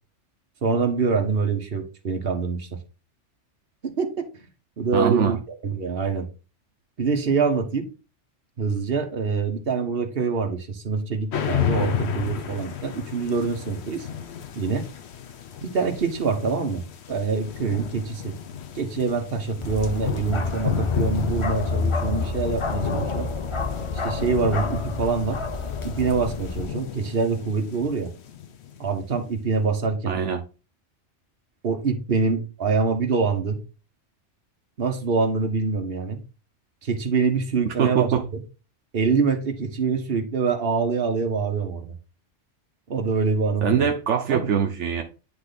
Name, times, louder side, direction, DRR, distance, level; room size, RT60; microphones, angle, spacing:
voice 1, 0.6-2.7 3.8-4.1 4.8-5.4 5.6-6.3 7.0-7.9 8.6-14.1 14.5-14.9 15.6-18.3 18.8-23.3 24.0-25.4 25.8-28.1 28.8-30.2 31.6-33.6 34.8-36.2 36.8-38.1 38.9-41.9 42.9-43.9 44.3-44.5, right 4 dB, 55° right, 1.3 m, -25 dB
voice 2, 4.9-5.3 30.1-30.4 37.7-38.2 43.6-45.0, right 8 dB, 75° right, 1.1 m, -23 dB
sound 1, 11.3-29.1, left 9 dB, 65° left, 1.0 m, -33 dB
Bark, 19.6-26.7, left 3 dB, 35° left, 0.6 m, -29 dB
9.7 x 3.3 x 4.0 m
omnidirectional pair, 1.2 m